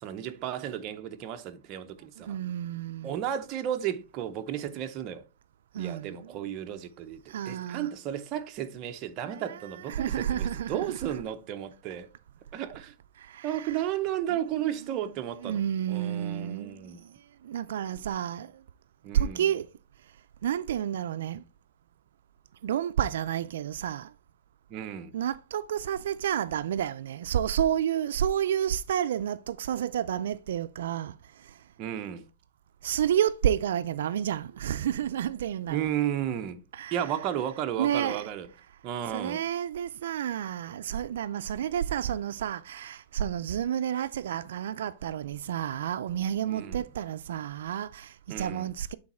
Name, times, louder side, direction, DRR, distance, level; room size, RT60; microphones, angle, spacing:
voice 1, 0.0-2.4 3.0-5.2 5.8-12.1 12.5-12.9 13.4-15.6 15.9-17.0 19.0-19.4 24.7-25.1 31.8-32.3 35.7-36.6 36.9-38.5 38.8-39.4 46.4-46.8 48.3-48.7, right 10 dB, 30° right, 0.7 m, -33 dB
voice 2, 2.2-3.2 5.7-6.3 7.3-7.9 9.2-11.1 13.2-13.8 14.3-14.4 14.8-15.1 15.4-17.2 17.4-18.6 19.1-19.7 20.4-21.4 22.6-24.1 25.1-31.6 32.8-35.9 36.7-37.1 37.8-38.3 39.1-49.0, right 10 dB, 80° right, 0.4 m, -30 dB
8.6 x 4.0 x 4.2 m
supercardioid pair, 165°, 0 cm